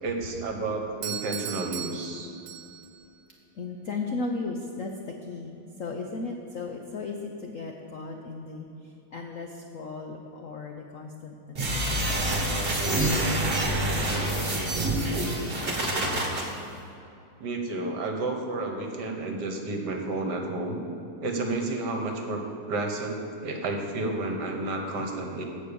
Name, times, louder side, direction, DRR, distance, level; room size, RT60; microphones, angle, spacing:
voice 1, 0.0-2.3 17.4-20.8 21.2-22.4 22.7-25.4, right 2 dB, 55° right, 3 dB, 1.6 m, -31 dB
Doorbell, 1.0-3.0, right 10 dB, 75° right, 1.5 m, -37 dB
voice 2, 3.5-12.4 12.9-16.3, left 3 dB, 65° left, 2 dB, 0.8 m, -37 dB
sound 1, 11.5-16.4, right 1 dB, 30° right, 1.5 m, -26 dB
15.0 x 5.4 x 7.1 m, 2.6 s
omnidirectional pair, 2.3 m